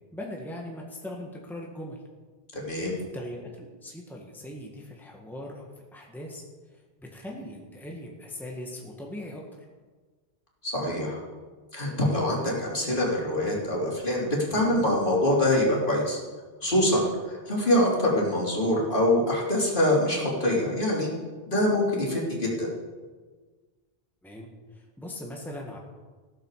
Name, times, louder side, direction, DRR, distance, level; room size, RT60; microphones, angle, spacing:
voice 1, 0.1-2.0 3.1-6.4 7.1-9.6 24.2-25.8, left 1 dB, ahead, -1 dB, 1.8 m, -40 dB
voice 2, 2.5-3.0 10.6-11.2 11.7-16.2 16.6-21.1 21.5-22.7, left 1 dB, 55° left, -3 dB, 3.6 m, -24 dB
15.0 x 13.5 x 4.9 m, 1.4 s
omnidirectional pair, 1.1 m